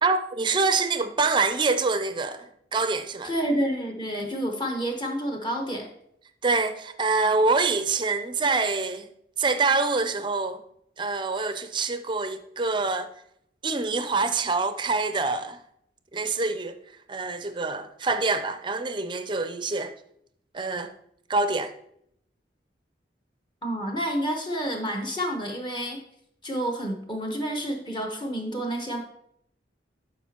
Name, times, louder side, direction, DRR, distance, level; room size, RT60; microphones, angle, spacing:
voice 1, 0.0-3.3 6.4-9.1 9.4-10.6 11.0-13.1 13.6-15.6 16.1-16.8 17.1-19.9 20.5-20.9 21.3-21.7, right 3 dB, 25° right, 0.5 m, -25 dB
voice 2, 3.2-5.9 23.6-26.0 26.4-29.0, equal, 25° left, 1.2 m, -29 dB
12.0 x 5.1 x 2.9 m
head